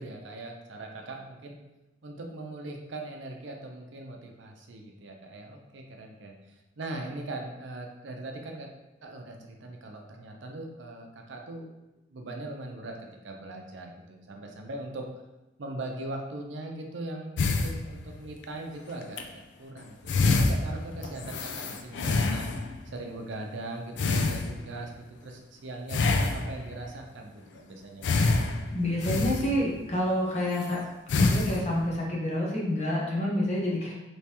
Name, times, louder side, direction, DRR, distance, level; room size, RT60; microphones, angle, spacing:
voice 1, 0.0-1.6 2.0-8.7 9.0-11.7 12.1-13.0 13.2-15.0 15.6-22.5 22.9-24.9 25.2-28.1, right 2 dB, 80° right, 2 dB, 0.5 m, -40 dB
sound 1, 17.4-18.4 19.0-19.2 19.8-19.9 20.1-22.8 24.0-24.9 25.9-26.8 28.0-29.9 30.5-30.7 31.1-31.9, left 3 dB, 75° left, 0.4 m, -27 dB
voice 2, 28.7-30.9 31.2-33.9, left 1 dB, 35° left, -4 dB, 0.8 m, -28 dB
3.4 x 3.1 x 2.9 m, 0.99 s
head